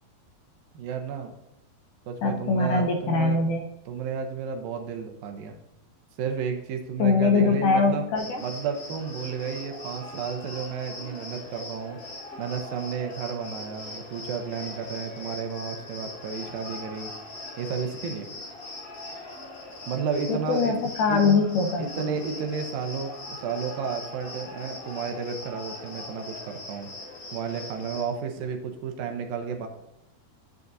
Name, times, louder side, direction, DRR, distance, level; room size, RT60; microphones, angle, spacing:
voice 1, 0.7-1.3 2.1-3.4 3.9-5.5 6.2-8.0 8.4-12.0 12.4-17.1 17.6-18.3 19.9-20.8 21.1-21.4 21.8-26.9 27.3-29.7, right 6 dB, 75° right, 5 dB, 2.5 m, -32 dB
voice 2, 2.2-3.6 7.0-8.4 20.3-21.9, left 4 dB, 75° left, 3 dB, 2.0 m, -22 dB
Cricket, 8.2-28.0, left 2 dB, 60° left, 4.6 m, -41 dB
10.5 x 8.0 x 2.7 m, 0.93 s
omnidirectional pair, 4.3 m